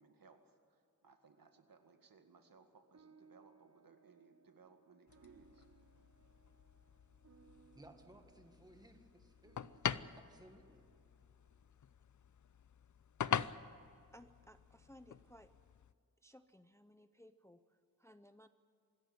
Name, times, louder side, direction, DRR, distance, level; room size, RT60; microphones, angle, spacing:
voice 1, 0.0-5.7, right 5 dB, 80° right, 6 dB, 2.0 m, -64 dB
sound 1, 2.9-11.6, right 6 dB, 50° right, 1.0 m, -68 dB
sound 2, 5.1-15.9, left 8 dB, 60° left, 0.6 m, -45 dB
voice 2, 7.7-10.9, right 1 dB, 10° right, 5 dB, 1.7 m, -61 dB
voice 3, 14.1-15.5 16.2-18.5, left 1 dB, 10° left, 10 dB, 0.5 m, -61 dB
25.5 x 14.0 x 9.6 m, 2.4 s
wide cardioid pair, 150°, 34 cm